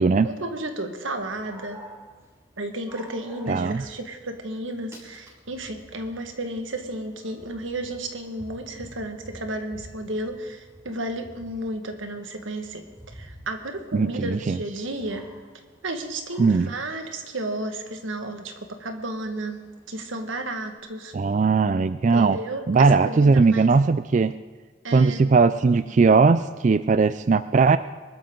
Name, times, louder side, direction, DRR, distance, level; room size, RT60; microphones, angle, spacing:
voice 1, 0.2-1.8 2.6-12.8 13.1-15.2 15.8-19.6 19.9-21.1 22.1-23.7 24.8-25.3, right 1 dB, 90° right, 5 dB, 1.8 m, -32 dB
Dog, 1.2-20.8, equal, 15° right, 5.0 m, -50 dB
voice 2, 3.5-3.8 13.9-14.6 16.4-16.7 21.1-22.4 22.7-24.3 24.9-27.8, right 4 dB, 40° right, 13 dB, 0.3 m, -19 dB
23.5 x 12.5 x 3.9 m, 1.4 s
head